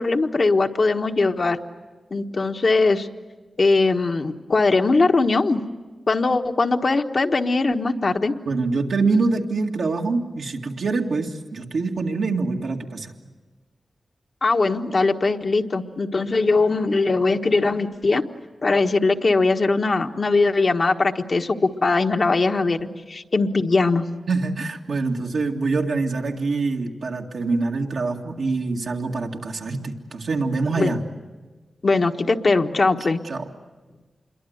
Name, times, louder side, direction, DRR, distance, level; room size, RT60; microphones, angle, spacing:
voice 1, 0.0-1.6 2.1-3.1 3.6-5.6 6.1-8.3 14.4-18.2 18.6-22.8 23.1-24.0 30.7-31.0 31.8-33.2, left 3 dB, 55° left, 4 dB, 1.3 m, -20 dB
voice 2, 8.5-13.1 22.8-22.9 24.3-31.0 33.2-33.4, right 3 dB, 80° right, 0 dB, 2.1 m, -25 dB
27.0 x 22.5 x 8.0 m, 1.3 s
cardioid pair, 65°, 0 cm